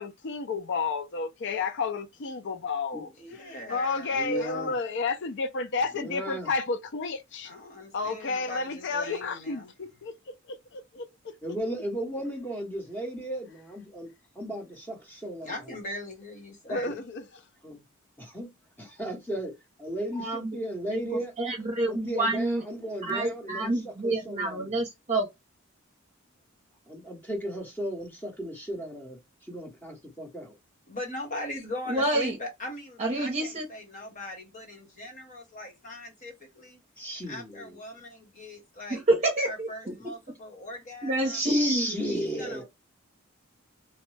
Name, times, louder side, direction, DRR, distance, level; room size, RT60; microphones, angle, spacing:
voice 1, 0.0-3.1 3.7-7.5 7.9-11.1 16.7-17.2, left 4 dB, 55° left, 0.5 m, -31 dB
voice 2, 3.2-4.8 7.4-9.7 15.4-17.0 30.9-36.8 37.3-39.0 39.4-41.4 42.1-42.6, left 1 dB, 40° left, 1.3 m, -40 dB
voice 3, 4.1-4.7 5.9-6.5 11.4-14.1 14.3-15.7 16.7-17.0 17.6-17.8 18.2-18.5 18.8-19.5 19.8-21.3 21.9-24.8 26.9-30.5 37.0-37.8 41.3-42.6, equal, 10° left, 0.9 m, -35 dB
voice 4, 20.1-20.6 20.9-22.6 23.0-25.3 31.9-32.4 33.0-33.7 38.9-39.7 41.0-42.0, right 1 dB, 35° right, 0.8 m, -28 dB
3.0 x 2.2 x 3.2 m
head